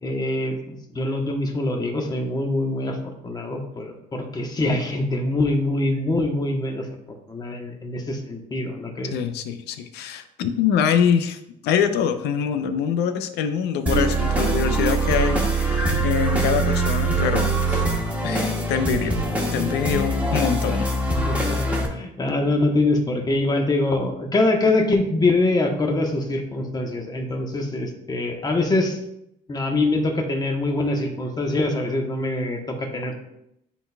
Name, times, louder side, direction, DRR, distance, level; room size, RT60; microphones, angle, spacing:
voice 1, 0.0-3.0 3.2-6.9 7.3-9.1 16.3-16.6 21.3-29.0 29.5-33.2, left 2 dB, 25° left, 3 dB, 1.1 m, -24 dB
voice 2, 9.1-17.8 18.2-19.2 19.5-21.2 21.9-22.0, left 8 dB, 80° left, 9 dB, 0.6 m, -24 dB
sound 1, 13.9-21.9, right 2 dB, 10° right, 1.3 m, -23 dB
10.0 x 4.0 x 2.3 m, 0.80 s
cardioid pair, 110°, 17 cm